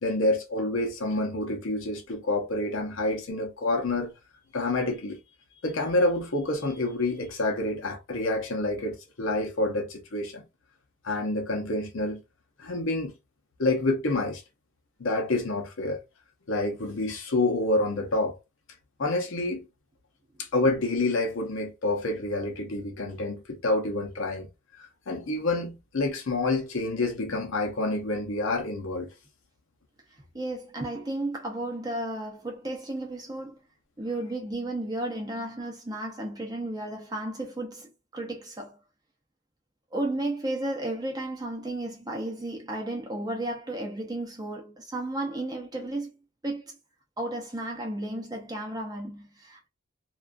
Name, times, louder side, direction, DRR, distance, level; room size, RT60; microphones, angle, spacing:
voice 1, 0.0-4.1 4.5-5.2 5.6-10.4 11.0-12.2 12.6-13.1 13.6-14.4 15.0-16.0 16.5-18.4 19.0-19.7 20.4-24.5 24.8-29.1, left 2 dB, 75° left, 0.7 m, -28 dB
voice 2, 30.3-33.6 34.0-38.8 39.9-46.1 46.4-46.8 47.2-49.7, right 1 dB, 20° right, 0.5 m, -33 dB
2.3 x 2.3 x 2.4 m
head